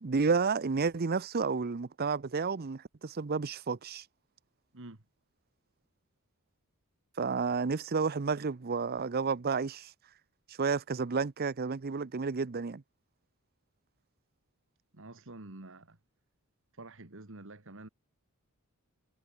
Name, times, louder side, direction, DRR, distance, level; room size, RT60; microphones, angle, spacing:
voice 1, 0.0-4.0 7.2-9.9 10.5-12.8, right 5 dB, 45° right, 0.6 m, -31 dB
voice 2, 14.9-16.0 16.7-17.9, right 2 dB, 60° right, 2.0 m, -48 dB
head